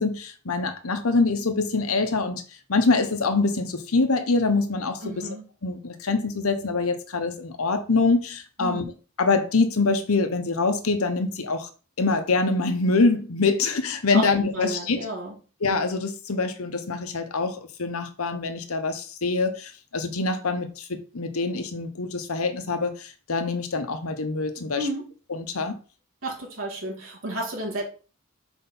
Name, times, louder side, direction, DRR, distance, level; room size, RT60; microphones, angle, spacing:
voice 1, 0.0-2.4 2.7-5.3 5.6-8.8 9.2-11.7 12.0-15.0 15.6-24.9 25.3-25.7, left 3 dB, 85° left, 1.0 m, -25 dB
voice 2, 5.0-5.4 8.6-8.9 14.1-14.3 14.5-15.3 24.7-25.1 26.2-27.8, right 1 dB, 70° right, 2.1 m, -31 dB
4.6 x 4.3 x 5.6 m
head